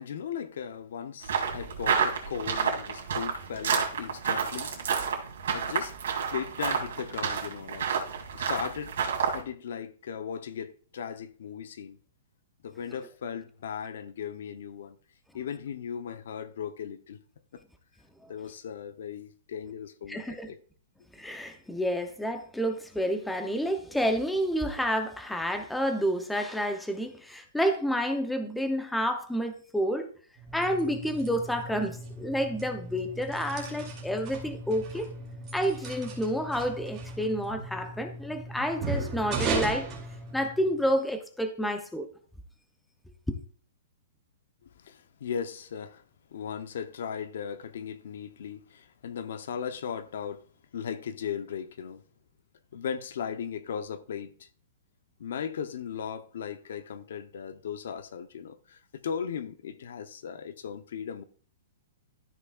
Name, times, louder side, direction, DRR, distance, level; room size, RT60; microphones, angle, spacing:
voice 1, 0.0-4.9 5.5-5.9 6.3-7.9 8.3-9.0 9.3-12.0 12.6-15.0 15.3-17.2 17.5-17.6 18.3-20.6 44.8-46.0 46.3-50.4 50.7-52.0 52.7-54.5 55.2-61.2, left 7 dB, 65° left, 0.7 m, -37 dB
sound 1, 1.2-9.4, right 7 dB, 70° right, 2.5 m, -30 dB
voice 2, 20.1-20.5 21.1-30.1 30.5-35.1 35.5-39.9 40.3-42.1, equal, ahead, 0.6 m, -29 dB
sound 2, 30.4-40.9, right 3 dB, 20° right, 2.5 m, -37 dB
13.5 x 5.8 x 2.4 m
hypercardioid pair, 170°, 0 cm